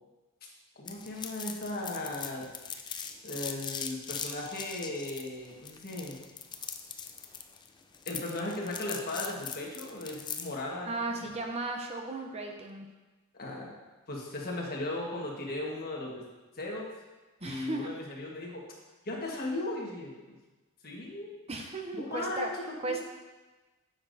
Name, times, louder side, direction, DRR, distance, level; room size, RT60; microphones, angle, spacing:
voice 1, 0.8-2.5 3.2-6.2 8.1-11.4 13.3-13.7 14.1-16.2 16.5-16.9 17.4-18.6 19.0-20.4 20.8-21.3 21.9-23.0, left 2 dB, 45° left, -2 dB, 1.4 m, -37 dB
sound 1, 0.9-10.6, left 7 dB, 20° left, 0.3 m, -40 dB
voice 2, 10.9-12.9 17.4-17.9 21.5-22.5 22.8-23.0, right 3 dB, 30° right, 2 dB, 0.6 m, -35 dB
9.7 x 6.8 x 2.7 m, 1.2 s
head